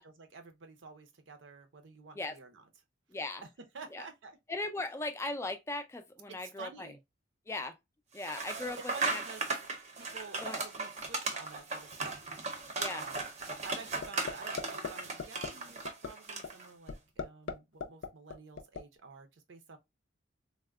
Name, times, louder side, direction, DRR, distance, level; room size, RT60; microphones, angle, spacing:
voice 1, 0.0-2.6 3.7-4.4 6.3-7.0 8.6-9.4 10.0-12.5 12.9-13.2 13.6-19.8, right 4 dB, 80° right, 0.6 m, -50 dB
voice 2, 3.1-3.4 3.9-4.1 4.5-6.9 7.5-7.8 8.1-9.2 10.4-10.6 12.8-13.1, left 2 dB, 15° left, 0.3 m, -38 dB
sound 1, 8.2-16.7, right 3 dB, 35° right, 0.6 m, -37 dB
sound 2, 14.0-14.3 14.6-14.9 15.2-15.5 15.9-16.1 16.4-16.5 16.9-17.5 17.8-18.8, left 6 dB, 85° left, 0.4 m, -36 dB
3.4 x 2.1 x 2.2 m
head